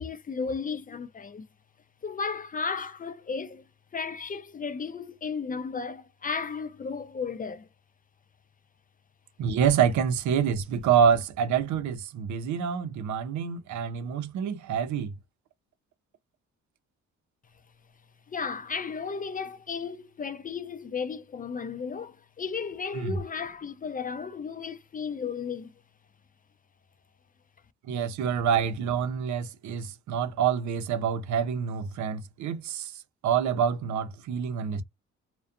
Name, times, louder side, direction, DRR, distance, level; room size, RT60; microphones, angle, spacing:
voice 1, 0.0-1.5 2.0-3.6 3.9-7.7 18.3-25.7, left 5 dB, 30° left, 0.4 m, -34 dB
voice 2, 9.4-15.1 23.0-23.2 27.9-32.9 33.2-34.8, right 7 dB, 70° right, 0.6 m, -27 dB
2.5 x 2.2 x 2.4 m
cardioid pair, 90°, 30 cm